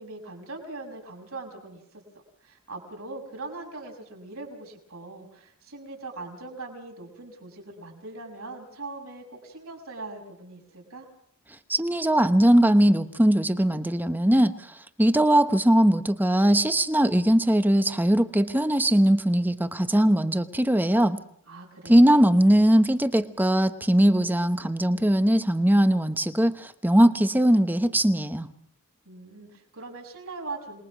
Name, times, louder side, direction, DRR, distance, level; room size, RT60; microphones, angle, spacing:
voice 1, 0.0-11.1 21.5-22.2 29.0-30.8, right 3 dB, 75° right, 2 dB, 6.3 m, -41 dB
voice 2, 11.7-14.5 15.0-21.2 21.9-28.5, right 1 dB, 10° right, 10 dB, 1.0 m, -20 dB
27.5 x 21.0 x 6.1 m, 0.68 s
head